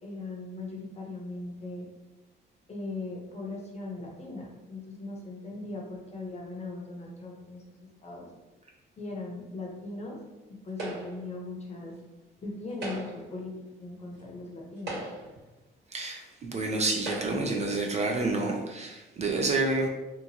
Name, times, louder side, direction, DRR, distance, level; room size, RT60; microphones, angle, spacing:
voice 1, 0.0-1.9 2.7-8.3 9.0-10.2 10.5-11.9 12.4-13.5 13.8-15.0, left 2 dB, 35° left, -1 dB, 0.8 m, -39 dB
sound 1, 10.8-11.3 12.7-13.3 14.2-14.3 14.8-15.4 16.3-16.4 17.0-17.6, right 2 dB, 60° right, 1.4 m, -38 dB
voice 2, 15.9-19.9, right 2 dB, 35° right, 1 dB, 0.4 m, -29 dB
2.9 x 2.4 x 2.6 m, 1.1 s
cardioid pair, 90°, 20 cm